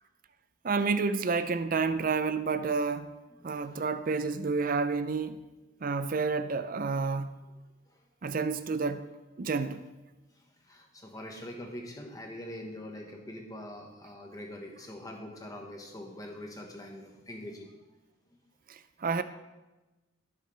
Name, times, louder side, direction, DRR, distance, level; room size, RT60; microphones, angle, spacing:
voice 1, 0.6-3.1 3.4-5.4 5.8-7.4 8.2-9.1 9.4-9.9 18.7-19.2, right 4 dB, 45° right, 0.5 m, -30 dB
voice 2, 3.4-3.8 7.9-8.0 10.3-17.7, left 1 dB, 15° left, 1.3 m, -44 dB
15.0 x 6.5 x 3.3 m
head